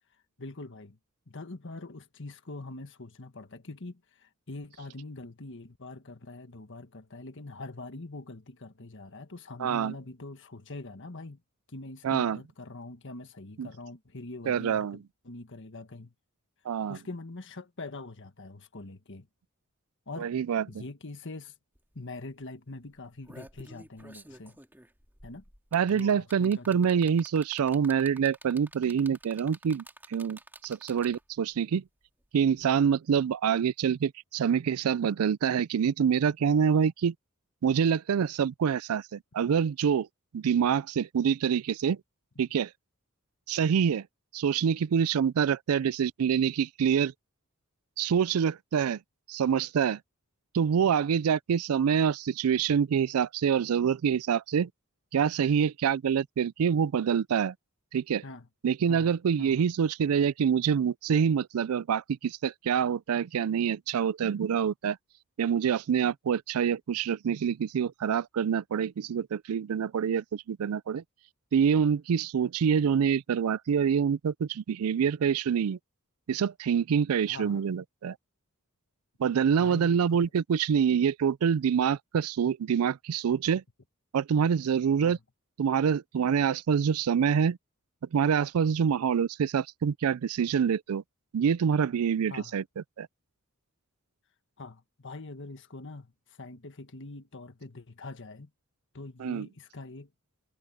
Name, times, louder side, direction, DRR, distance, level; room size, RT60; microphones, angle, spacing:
voice 1, 0.4-1.0 1.3-11.4 11.7-16.1 16.9-19.3 20.1-20.3 20.7-21.5 21.9-24.6 25.2-25.4 25.9-26.9 58.2-58.5 58.9-59.7 77.3-77.6 79.5-80.3 85.0-85.2 92.3-92.6 94.6-98.5 98.9-100.1, left 2 dB, 60° left, 1.6 m, -43 dB
voice 2, 9.6-9.9 12.0-12.4 13.6-13.7 14.5-15.0 16.7-17.0 20.2-20.6 25.7-29.8 30.1-31.8 32.3-37.1 37.6-40.1 40.3-42.0 42.4-42.7 43.5-44.1 44.3-47.1 48.0-49.0 49.3-50.0 50.5-54.7 55.1-57.5 57.9-58.2 58.6-65.0 65.4-71.0 71.5-75.8 76.3-78.2 79.2-83.6 84.1-85.2 85.6-87.6 88.1-91.0 91.3-92.6 93.0-93.1 99.2-99.5, right 7 dB, 75° right, 0.4 m, -26 dB
sound 1, 21.8-21.9 22.2-22.4 23.0-31.4 32.6-32.7, right 1 dB, 10° right, 2.1 m, -50 dB
head